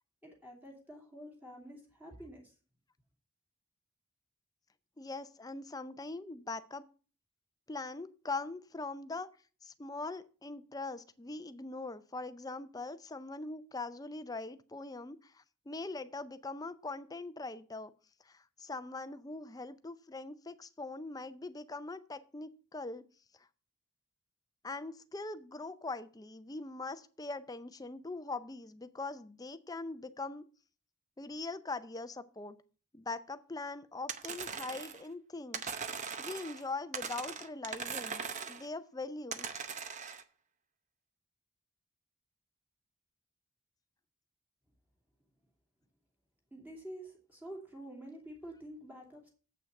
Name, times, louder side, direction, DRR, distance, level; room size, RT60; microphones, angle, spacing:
voice 1, 0.2-2.5 46.5-49.3, right 1 dB, 10° right, -2 dB, 2.7 m, -48 dB
voice 2, 5.0-6.9 7.7-9.3 9.6-17.9 18.2-23.0 24.6-30.4 31.2-32.6 32.9-35.7 36.2-39.5, left 3 dB, 15° left, 12 dB, 0.5 m, -42 dB
sound 1, 34.1-35.1 35.5-36.6 36.9-38.7 39.3-40.2, right 6 dB, 35° right, 0.7 m, -40 dB
7.9 x 6.1 x 6.4 m, 0.37 s
head